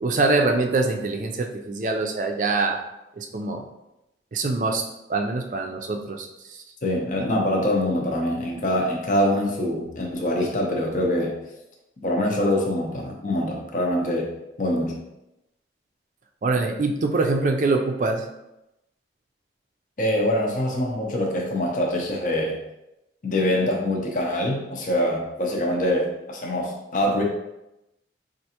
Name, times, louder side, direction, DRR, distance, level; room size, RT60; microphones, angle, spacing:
voice 1, 0.0-2.8 3.2-3.6 4.3-4.8 5.1-6.6 16.4-18.3, right 3 dB, 45° right, 3 dB, 0.4 m, -24 dB
voice 2, 6.8-11.4 12.0-14.3 14.6-15.0 20.0-22.6 23.2-27.2, left 1 dB, 45° left, -1 dB, 0.6 m, -24 dB
4.5 x 2.5 x 2.8 m, 0.90 s
head